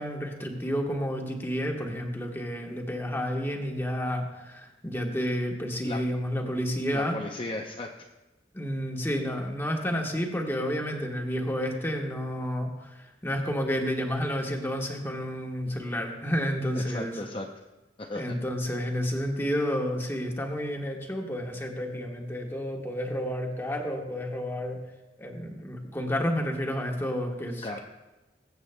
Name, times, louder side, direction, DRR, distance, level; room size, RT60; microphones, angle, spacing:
voice 1, 0.0-7.2 8.5-17.2 18.1-24.8 25.2-27.8, equal, 15° left, 1 dB, 1.2 m, -30 dB
voice 2, 6.9-7.9 16.7-17.5 18.1-18.3 27.6-27.8, left 2 dB, 30° left, 0 dB, 0.6 m, -35 dB
22.0 x 8.0 x 2.2 m, 1.1 s
head